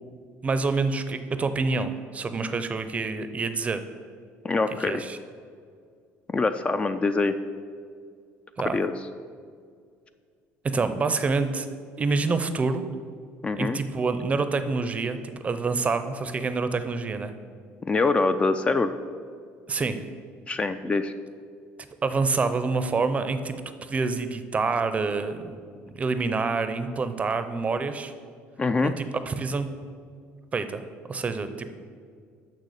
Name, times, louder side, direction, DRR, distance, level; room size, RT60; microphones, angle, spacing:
voice 1, 0.4-3.8 4.8-5.2 8.6-8.8 10.6-11.7 12.0-12.8 13.5-17.3 19.7-20.0 22.0-23.5 23.8-25.5 25.9-28.1 28.8-29.7 30.5-30.8 31.1-31.7, right 4 dB, 25° right, 10 dB, 0.6 m, -27 dB
voice 2, 4.4-5.0 6.3-7.4 8.7-8.9 13.4-13.8 17.9-18.9 20.5-21.1 28.6-28.9, left 3 dB, 20° left, 9 dB, 0.3 m, -24 dB
6.6 x 5.9 x 6.5 m, 2.2 s
cardioid pair, 100°, 5 cm